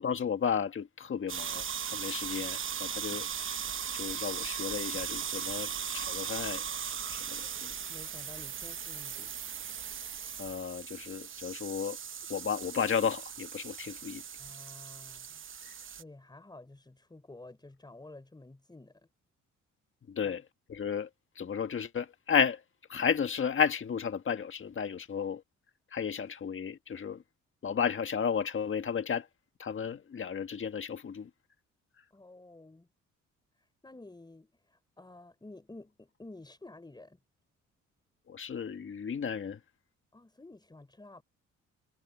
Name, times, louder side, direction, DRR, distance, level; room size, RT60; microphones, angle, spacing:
voice 1, 0.0-3.6 3.9-7.7 10.4-12.0 12.3-14.2 20.1-20.4 20.7-21.1 21.4-22.6 22.9-25.4 25.9-27.2 27.6-29.3 29.6-31.3 38.3-39.6, left 7 dB, 40° left, 1.8 m, -33 dB
sound 1, 1.3-16.0, right 8 dB, 40° right, 0.9 m, -38 dB
voice 2, 7.9-9.3 14.4-15.4 16.0-19.1 20.2-20.4 32.1-32.9 33.6-37.2 40.1-41.2, left 2 dB, 15° left, 4.6 m, -51 dB
cardioid pair, 90°, 30 cm